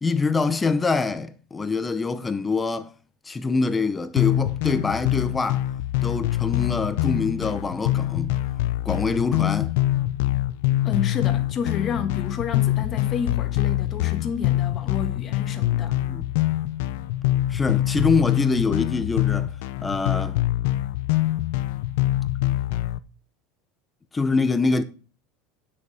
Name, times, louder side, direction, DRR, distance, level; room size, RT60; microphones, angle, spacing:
voice 1, 0.0-2.9 3.3-5.6 6.0-8.4 8.8-9.7 16.0-16.2 17.5-19.5 19.8-20.4 24.1-24.8, left 4 dB, 10° left, 0.7 m, -24 dB
sound 1, 4.2-23.0, left 15 dB, 75° left, 0.6 m, -24 dB
voice 2, 10.8-16.0, left 6 dB, 30° left, 1.5 m, -30 dB
9.8 x 6.7 x 4.9 m
supercardioid pair, 155°, 0 cm